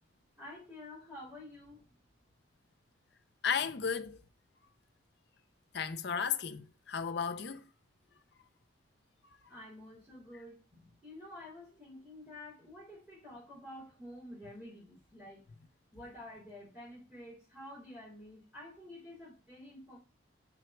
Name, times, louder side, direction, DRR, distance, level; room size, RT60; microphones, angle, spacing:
voice 1, 0.4-1.9 9.5-15.4 15.9-20.0, left 1 dB, 5° right, 4.0 m, -50 dB
voice 2, 3.4-4.2 5.7-7.6, left 6 dB, 55° left, 0.6 m, -34 dB
6.1 x 3.8 x 4.4 m
head